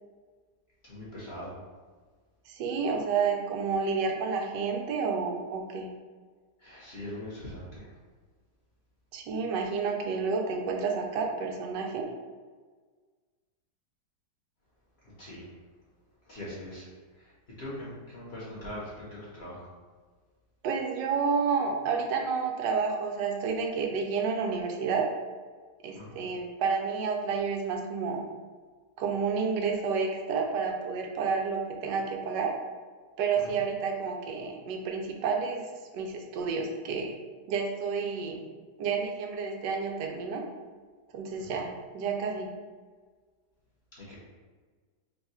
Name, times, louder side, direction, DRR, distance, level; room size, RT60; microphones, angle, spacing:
voice 1, 0.8-1.5 6.6-7.9 15.2-15.5 16.3-16.9 17.2-17.3 17.6-19.7 25.9-26.2 33.4-33.6 41.4-41.6 44.0-44.2, left 1 dB, 45° left, -7 dB, 1.1 m, -41 dB
voice 2, 2.5-5.9 9.1-12.1 20.6-25.1 25.8-28.3 29.0-32.5 33.2-35.6 35.9-37.1 37.5-38.4 38.8-40.4 41.1-42.5, right 5 dB, 85° right, 2 dB, 1.2 m, -30 dB
3.6 x 2.3 x 4.2 m, 1.4 s
omnidirectional pair, 1.9 m